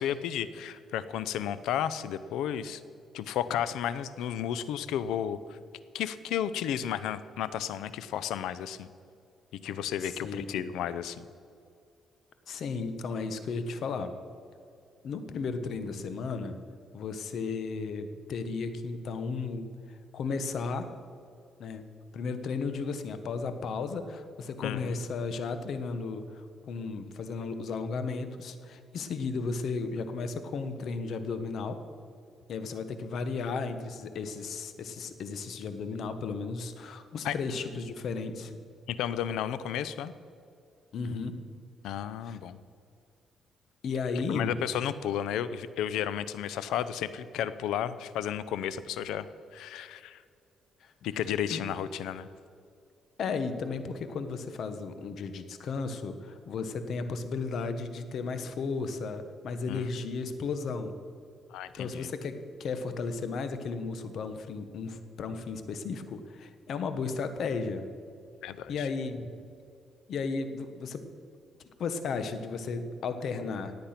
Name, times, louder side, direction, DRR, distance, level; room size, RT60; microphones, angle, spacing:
voice 1, 0.0-2.8 3.1-5.6 5.9-8.9 9.6-11.3 24.6-25.0 37.2-37.3 38.9-40.1 41.8-42.6 44.3-49.3 49.5-50.2 51.0-52.3 59.7-59.8 61.5-62.1 68.4-68.9, left 9 dB, 85° left, 15 dB, 0.6 m, -33 dB
voice 2, 10.0-10.6 12.5-14.1 15.0-16.6 16.9-20.9 21.6-21.9 22.1-31.8 32.5-38.6 40.9-41.4 42.2-42.4 43.8-44.6 50.8-50.9 51.5-51.6 53.2-61.0 61.8-67.9 68.7-69.3 70.1-71.0 71.8-73.8, left 4 dB, 65° left, 10 dB, 1.2 m, -34 dB
17.5 x 8.5 x 5.9 m, 2.4 s
cardioid pair, 90°, 0 cm